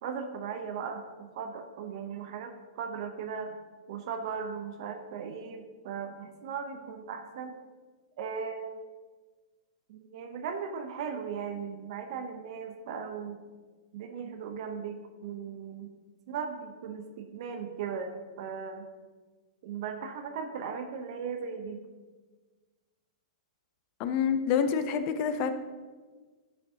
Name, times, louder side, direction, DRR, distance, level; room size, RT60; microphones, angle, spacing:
voice 1, 0.0-3.6 3.9-7.6 8.2-8.8 9.9-13.4 13.9-15.9 16.3-18.9 19.6-21.8, right 6 dB, 55° right, 5 dB, 0.8 m, -37 dB
voice 2, 24.0-25.5, left 7 dB, 35° left, 9 dB, 0.6 m, -27 dB
10.5 x 6.6 x 2.8 m, 1.4 s
hypercardioid pair, 145°, 4 cm